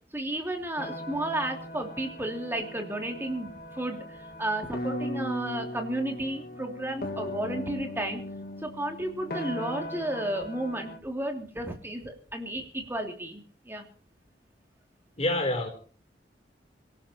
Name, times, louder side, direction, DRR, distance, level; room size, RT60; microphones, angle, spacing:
voice 1, 0.1-8.2 8.6-13.8, right 1 dB, 15° right, 2 dB, 2.8 m, -33 dB
sound 1, 0.8-11.0, left 1 dB, 60° left, 1.9 m, -38 dB
voice 2, 15.2-15.7, left 1 dB, 40° left, 6 dB, 3.5 m, -26 dB
25.5 x 17.5 x 3.0 m, 0.41 s
head